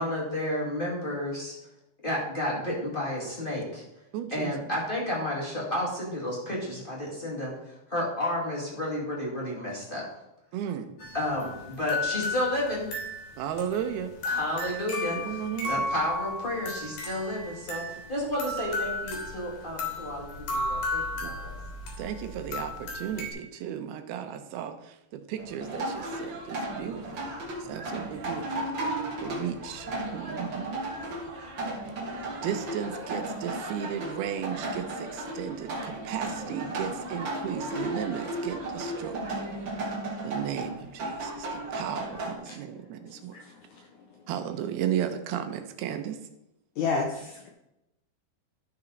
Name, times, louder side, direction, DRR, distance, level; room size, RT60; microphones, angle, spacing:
voice 1, 0.0-1.6 2.0-3.8 4.3-10.0 11.1-12.9 14.2-15.4 15.7-21.5, left 1 dB, 20° left, -5 dB, 1.6 m, -31 dB
voice 2, 4.1-4.5 10.5-10.9 13.4-14.1 15.1-15.9 21.2-21.3 22.0-27.2 27.6-28.7 28.9-30.8 32.4-39.3 40.2-43.4 44.3-46.2, right 9 dB, 90° right, 8 dB, 2.8 m, -35 dB
sound 1, 11.0-23.3, left 2 dB, 55° left, 3.4 m, -34 dB
sound 2, 25.4-42.3, right 1 dB, 45° right, 1.6 m, -35 dB
voice 3, 43.1-43.9 46.8-47.5, left 4 dB, 75° left, 2 dB, 1.8 m, -32 dB
13.0 x 5.8 x 4.0 m, 0.89 s
omnidirectional pair, 4.4 m